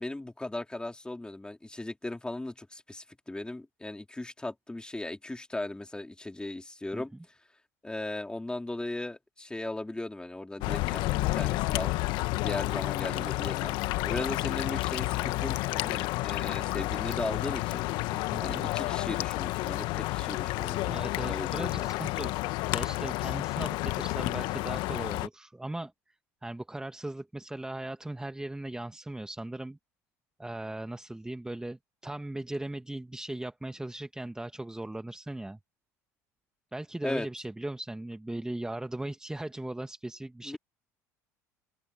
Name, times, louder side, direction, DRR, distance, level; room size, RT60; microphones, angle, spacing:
voice 1, 0.0-7.1 7.8-11.9 12.4-13.7 14.0-17.8 18.4-20.9 21.2-21.9 37.0-37.3 38.3-38.5 40.4-40.6, left 2 dB, 10° left, 3.6 m, -37 dB
sound 1, 10.6-25.3, left 20 dB, 65° left, 1.3 m, -30 dB
voice 2, 13.0-13.3 18.1-18.7 20.9-26.1 26.4-29.8 30.4-35.6 36.7-40.6, right 1 dB, 10° right, 1.4 m, -38 dB
open air
hypercardioid pair, 70°, 8 cm